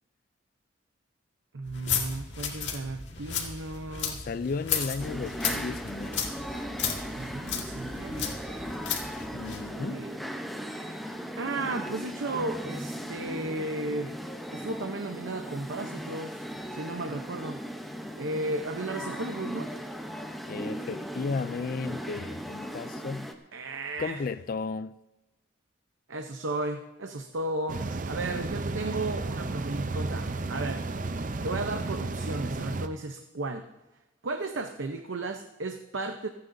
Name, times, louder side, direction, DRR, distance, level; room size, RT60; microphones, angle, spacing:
voice 1, 1.5-4.2 7.1-8.4 9.7-10.2 11.0-14.1 14.5-17.6 18.1-19.7 23.5-24.2 26.1-30.9 31.4-33.7 34.2-36.3, right 2 dB, 75° right, 0.8 m, -34 dB
sound 1, 1.7-9.7, left 7 dB, 65° left, 2.0 m, -34 dB
voice 2, 4.1-6.3 9.3-10.0 20.5-23.3 24.0-24.9, left 4 dB, 45° left, 0.3 m, -34 dB
sound 2, 5.0-23.3, equal, ahead, 0.8 m, -38 dB
sound 3, 27.7-32.9, right 3 dB, 40° right, 0.6 m, -33 dB
27.0 x 9.7 x 2.7 m
head